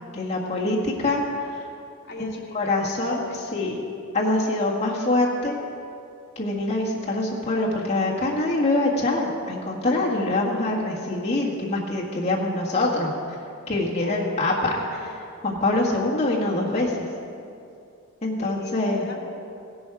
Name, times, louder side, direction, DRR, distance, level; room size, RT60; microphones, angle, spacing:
voice 1, 0.1-1.2 2.2-2.3 2.5-3.7 4.1-5.5 6.3-13.1 13.7-14.7 15.4-17.1 18.2-19.0, left 2 dB, 30° left, -5 dB, 1.7 m, -24 dB
voice 2, 2.0-3.7 14.0-15.1 18.4-19.3, left 1 dB, 50° left, -3 dB, 2.0 m, -38 dB
16.0 x 12.0 x 4.7 m, 2.6 s
head